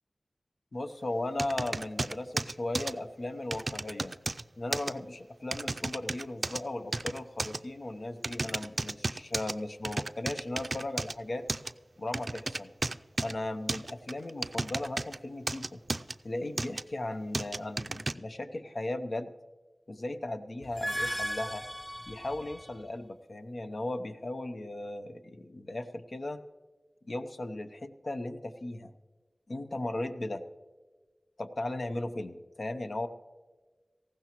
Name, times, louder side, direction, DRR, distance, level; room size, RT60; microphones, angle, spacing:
voice 1, 0.7-4.1 4.6-11.4 12.0-12.7 13.2-15.8 16.2-19.3 19.9-21.6 22.1-26.4 27.1-28.9 29.5-30.4 31.4-33.1, left 2 dB, 70° left, 8 dB, 0.8 m, -37 dB
sound 1, 1.4-2.9 3.5-4.4 4.7-4.9 5.5-6.6 6.9-7.6 8.2-9.5 9.8-11.1 11.5-11.7 12.1-13.3 13.7-15.2 15.5-16.1 16.6-16.8 17.3-18.1, right 2 dB, 60° right, 0.4 m, -33 dB
sound 2, 20.6-22.9, equal, 10° left, 0.4 m, -36 dB
19.0 x 15.0 x 3.0 m, 1.3 s
wide cardioid pair, 40°, 0 cm